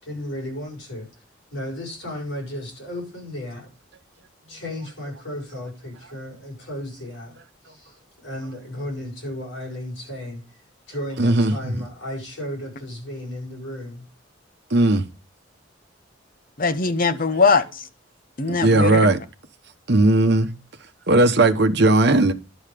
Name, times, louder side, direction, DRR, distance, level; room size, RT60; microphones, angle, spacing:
voice 1, 0.0-1.1 1.5-3.7 4.5-7.3 7.7-10.4 10.9-14.0, left 1 dB, 70° left, 6.7 m, -34 dB
voice 2, 11.2-11.8 14.7-15.0 18.5-19.2 19.9-20.5 21.1-22.3, right 2 dB, 55° right, 1.0 m, -17 dB
voice 3, 16.6-17.8 18.4-19.1, left 4 dB, 45° left, 0.8 m, -21 dB
11.5 x 5.6 x 6.7 m
head